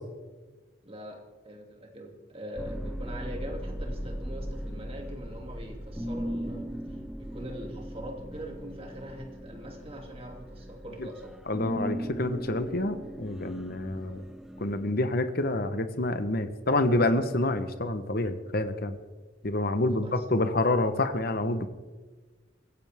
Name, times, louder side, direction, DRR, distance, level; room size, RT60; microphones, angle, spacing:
voice 1, 0.8-6.7 7.2-11.4 19.9-20.2, equal, 30° right, 1 dB, 2.7 m, -42 dB
sound 1, 2.6-14.9, equal, ahead, 0.8 m, -38 dB
voice 2, 11.5-14.2 14.6-19.0 19.4-21.7, left 2 dB, 50° left, 9 dB, 1.2 m, -27 dB
25.0 x 15.5 x 3.6 m, 1.3 s
head